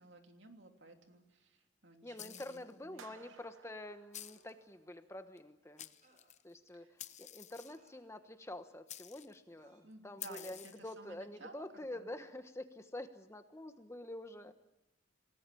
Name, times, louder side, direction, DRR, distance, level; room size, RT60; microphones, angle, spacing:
voice 1, 0.0-3.4 6.7-6.9 9.8-12.1, right 2 dB, 65° right, 4 dB, 3.0 m, -56 dB
sound 1, 1.1-1.2 3.0-3.3 4.2-4.6 6.0-6.3 7.6-8.4 9.6-9.8, right 2 dB, 40° right, 5.6 m, -69 dB
voice 2, 2.0-5.9 6.4-14.5, left 1 dB, 15° left, 8 dB, 1.2 m, -47 dB
Toy spin, 2.2-2.7 4.1-4.5 5.4-5.5 5.8-6.4 7.0-7.9 8.9-9.4 10.2-10.9, left 11 dB, 35° left, 0.8 m, -50 dB
sound 2, 3.0-5.2, right 5 dB, 85° right, 1.2 m, -60 dB
27.0 x 19.0 x 8.5 m, 0.91 s
head